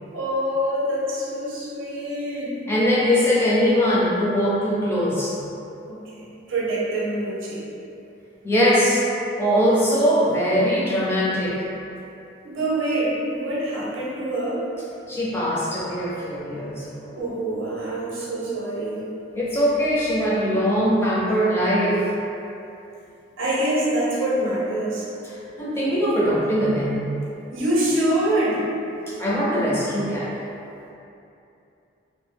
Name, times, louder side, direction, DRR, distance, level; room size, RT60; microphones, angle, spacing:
voice 1, 0.1-2.6 5.8-7.6 12.4-14.6 17.1-19.0 23.4-25.1 27.5-28.7, right 1 dB, 90° right, -6 dB, 0.6 m, -25 dB
voice 2, 2.7-5.4 8.4-9.1 9.4-11.7 15.1-17.1 19.4-22.1 25.2-27.0 29.1-30.3, equal, 15° left, -8 dB, 0.4 m, -21 dB
2.2 x 2.0 x 3.2 m, 2.8 s
head